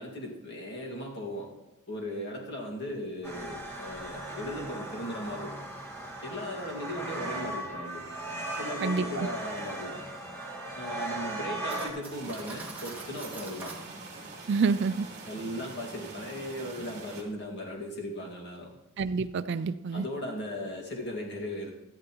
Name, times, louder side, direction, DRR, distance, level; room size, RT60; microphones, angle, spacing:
voice 1, 0.0-1.5 1.9-5.7 6.2-8.0 8.5-10.1 10.8-13.7 15.3-18.7 19.9-21.7, left 1 dB, 50° left, -1 dB, 2.0 m, -37 dB
sound 1, 3.2-11.9, right 2 dB, 10° left, 1.8 m, -37 dB
voice 2, 8.8-9.3 14.5-15.1 19.0-20.0, right 4 dB, 50° right, 11 dB, 0.3 m, -28 dB
Cutlery silverware, 11.7-13.9, right 3 dB, 10° right, 2.0 m, -44 dB
sound 2, 12.1-17.2, right 3 dB, 30° right, 2.0 m, -44 dB
13.5 x 12.0 x 3.0 m, 1.1 s
head